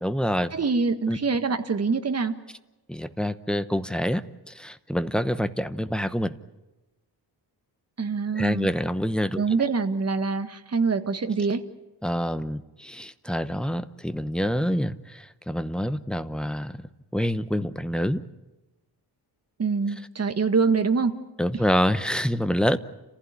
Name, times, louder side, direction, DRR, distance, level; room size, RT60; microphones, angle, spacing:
voice 1, 0.0-0.5 1.1-1.2 2.9-6.3 8.3-9.4 12.0-16.8 17.1-18.2 21.4-22.8, equal, ahead, 12 dB, 0.9 m, -26 dB
voice 2, 0.5-2.3 8.0-8.7 9.3-11.6 19.6-21.1, right 4 dB, 35° right, 8 dB, 1.8 m, -25 dB
30.0 x 15.5 x 9.8 m, 1.0 s
wide cardioid pair, 130°, 42 cm